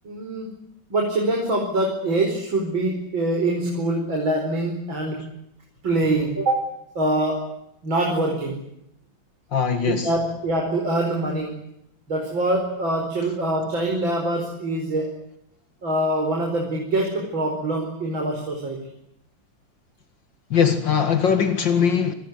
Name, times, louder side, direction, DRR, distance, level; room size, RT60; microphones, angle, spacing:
voice 1, 0.0-0.5 0.9-5.2 5.8-6.6 7.0-7.4 7.8-8.5 9.9-11.5 12.1-15.1 15.8-18.8, right 2 dB, 85° right, 1 dB, 5.7 m, -24 dB
voice 2, 9.5-10.1 20.5-22.1, left 7 dB, 70° left, 9 dB, 2.7 m, -20 dB
27.5 x 19.5 x 9.5 m, 0.79 s
omnidirectional pair, 2.1 m